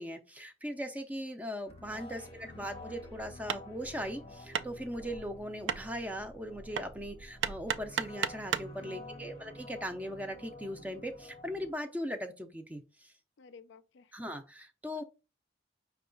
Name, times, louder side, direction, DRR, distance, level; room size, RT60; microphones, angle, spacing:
voice 1, 0.0-13.1 14.1-15.0, equal, 10° right, 0.4 m, -39 dB
sound 1, 1.7-11.7, left 1 dB, 30° left, 0.8 m, -50 dB
voice 2, 2.1-2.6 8.8-9.2 13.4-14.1 14.9-15.0, left 5 dB, 75° left, 0.4 m, -54 dB
Hammer, 2.8-8.8, right 7 dB, 80° right, 0.4 m, -37 dB
5.7 x 2.3 x 3.7 m
head